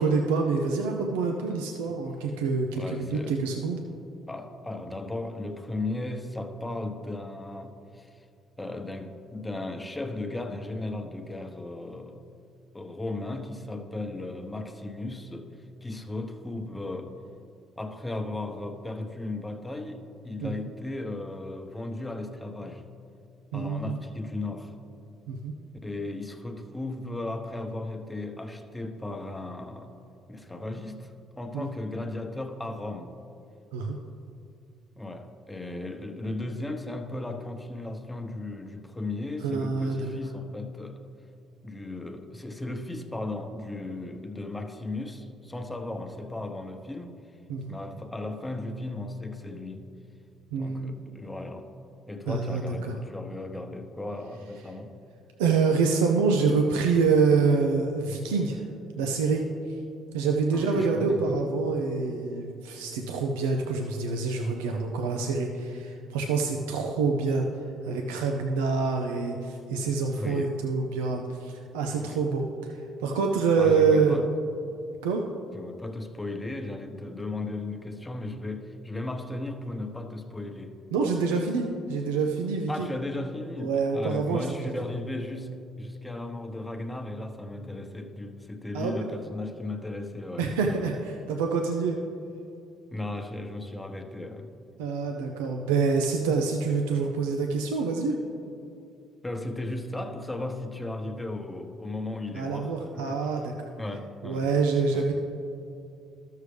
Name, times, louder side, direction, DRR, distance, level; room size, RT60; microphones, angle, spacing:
voice 1, 0.0-3.8 20.4-20.5 23.5-24.0 25.3-25.5 31.5-31.7 33.7-34.0 39.4-40.1 47.5-47.8 50.5-50.9 52.3-52.6 52.9-53.0 55.4-58.6 59.0-59.4 60.1-67.4 67.8-72.7 73.0-74.3 75.0-75.2 80.9-82.9 83.6-84.7 88.7-88.9 90.4-92.0 94.8-98.2 102.3-103.7 104.2-105.1, right 4 dB, 90° right, 2 dB, 0.5 m, -26 dB
voice 2, 2.7-3.4 4.3-8.3 8.6-12.2 12.7-15.5 15.8-17.1 17.8-22.9 23.5-24.7 25.8-30.0 30.3-33.2 35.0-41.0 41.6-47.2 47.7-49.8 50.6-51.8 52.1-55.0 60.5-61.4 70.1-70.5 71.8-72.2 73.6-74.3 75.5-80.8 82.7-90.9 92.9-94.6 99.2-103.3 103.8-104.5 104.9-105.0, left 2 dB, 15° left, 5 dB, 0.9 m, -36 dB
13.0 x 6.6 x 3.3 m, 2.6 s
supercardioid pair, 65°, 0 cm